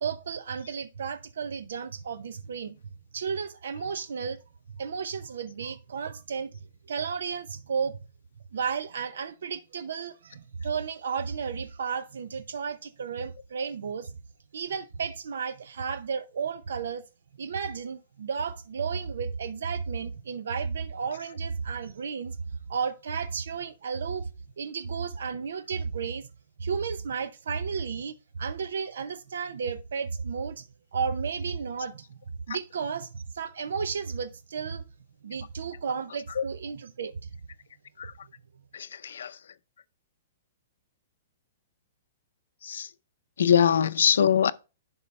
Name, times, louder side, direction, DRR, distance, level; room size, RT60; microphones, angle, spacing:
voice 1, 0.0-4.4 4.7-6.5 6.9-8.0 8.5-14.2 14.5-17.0 17.4-22.4 22.7-24.3 24.6-26.3 26.6-30.7 30.9-32.2 32.5-34.8 35.2-37.3, right 6 dB, 90° right, 0.7 m, -33 dB
voice 2, 43.4-44.5, left 8 dB, 85° left, 0.5 m, -22 dB
11.0 x 3.9 x 3.3 m
hypercardioid pair, 170°, 0 cm